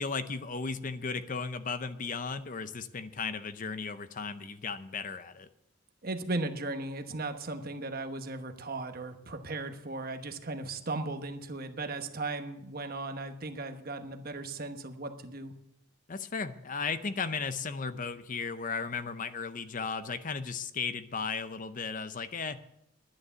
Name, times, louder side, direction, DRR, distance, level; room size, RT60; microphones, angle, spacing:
voice 1, 0.0-5.5 16.1-22.6, left 5 dB, 40° left, 12 dB, 0.6 m, -35 dB
voice 2, 6.0-15.5, right 2 dB, 45° right, 6 dB, 1.1 m, -37 dB
11.0 x 9.6 x 6.9 m, 0.82 s
head